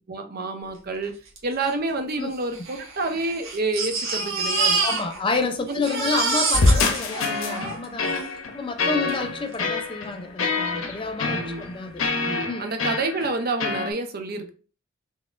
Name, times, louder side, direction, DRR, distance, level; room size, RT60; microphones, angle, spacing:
voice 1, 0.1-1.1 1.4-4.8 5.3-5.8 8.8-9.1 11.3-11.6 12.2-14.5, right 3 dB, 45° right, 0.6 m, -29 dB
Crying sobbing, 1.4-1.5 1.7-1.8 2.5-5.4 5.7-8.3 9.1-9.2 9.5-9.6, right 3 dB, 65° right, 1.3 m, -26 dB
voice 2, 4.8-12.7, left 3 dB, 25° left, 0.4 m, -30 dB
sound 1, 6.5-13.9, left 3 dB, 80° left, 0.8 m, -26 dB
4.0 x 3.6 x 2.4 m
head